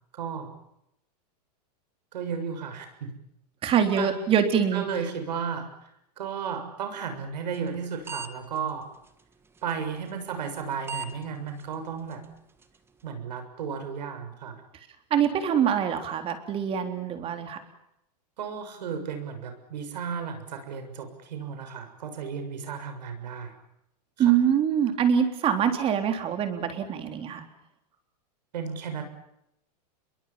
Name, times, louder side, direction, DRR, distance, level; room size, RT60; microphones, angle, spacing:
voice 1, 0.1-0.5 2.1-3.1 4.0-4.1 4.7-5.9 6.2-8.9 9.6-12.2 13.0-14.6 18.4-23.5 24.2-24.3 28.5-29.0, right 6 dB, 85° right, 7 dB, 7.0 m, -34 dB
voice 2, 3.6-4.8 15.1-17.6 24.2-27.4, right 8 dB, 25° right, 7 dB, 3.7 m, -24 dB
sound 1, 7.5-7.8 8.1-8.3 8.6-8.7 9.6-9.7 10.6-10.7 10.9-11.1 11.6-11.7 12.1-12.2 12.6-12.7, right 4 dB, 10° right, 1.6 m, -35 dB
28.5 x 22.5 x 7.4 m, 0.82 s
supercardioid pair, 150°, 21 cm